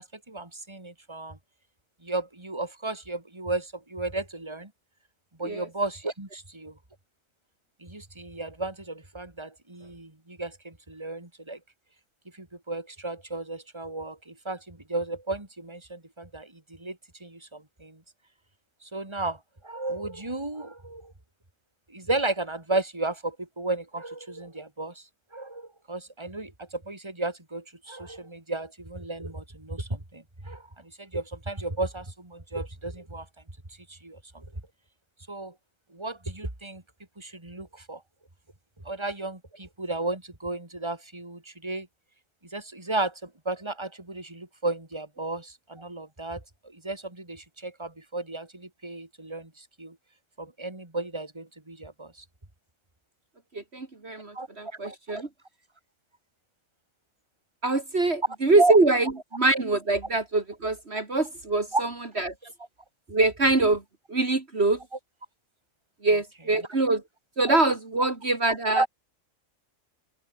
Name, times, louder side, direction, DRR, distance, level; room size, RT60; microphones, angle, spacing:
voice 1, 0.0-1.4 2.0-4.7 5.4-6.7 7.8-11.6 12.3-18.0 18.8-21.1 21.9-25.0 25.3-33.3 33.9-34.5 35.3-35.5 35.9-36.8 37.2-38.0 38.9-41.9 42.5-50.0 50.4-52.3 54.3-54.5 58.6-58.8 61.7-61.8 62.4-62.5 68.7-68.9, right 2 dB, 20° right, 3.4 m, -33 dB
voice 2, 53.5-55.3 57.6-61.9 62.2-62.3 63.1-63.8 64.1-64.8 66.0-67.0 67.4-68.8, right 2 dB, 50° right, 2.9 m, -24 dB
open air
omnidirectional pair, 1.4 m